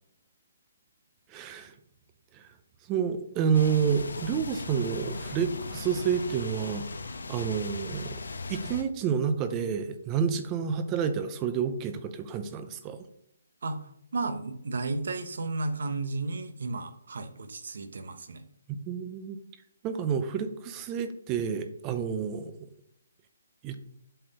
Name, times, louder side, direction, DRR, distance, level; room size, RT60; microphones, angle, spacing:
voice 1, 1.3-1.7 2.3-2.4 2.9-6.9 7.3-8.2 8.5-13.0 18.7-19.4 19.8-22.5 23.6-23.8, right 7 dB, 20° right, 10 dB, 0.5 m, -29 dB
sound 1, 3.5-8.8, left 3 dB, 85° left, 1.0 m, -38 dB
voice 2, 13.6-18.4, right 3 dB, 70° right, 9 dB, 1.0 m, -33 dB
7.8 x 4.3 x 5.1 m, 0.71 s
hypercardioid pair, 160°, 0 cm